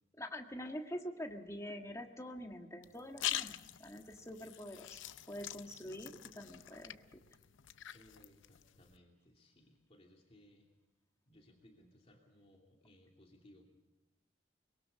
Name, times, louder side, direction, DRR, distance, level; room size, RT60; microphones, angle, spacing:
voice 1, 0.1-5.0 5.3-7.2, equal, 15° left, 3 dB, 1.7 m, -46 dB
sound 1, 2.8-9.0, left 12 dB, 90° left, 0.6 m, -44 dB
voice 2, 7.9-10.7 11.3-13.7, left 1 dB, 35° left, 0 dB, 2.7 m, -63 dB
23.5 x 22.5 x 5.4 m, 1.1 s
head